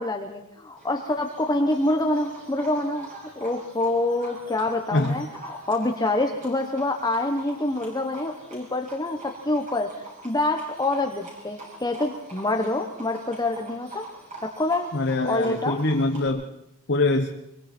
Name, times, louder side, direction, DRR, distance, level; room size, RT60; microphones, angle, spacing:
voice 1, 0.0-3.1 3.4-14.0 14.4-14.9 15.2-15.8, left 2 dB, 20° left, 4 dB, 1.1 m, -26 dB
Livestock farm animals working animals, 0.8-16.3, right 2 dB, 35° right, 7.7 m, -44 dB
voice 2, 4.9-5.2 14.9-16.5 16.9-17.3, left 2 dB, 55° left, 3 dB, 1.2 m, -23 dB
25.0 x 23.0 x 4.4 m, 0.82 s
head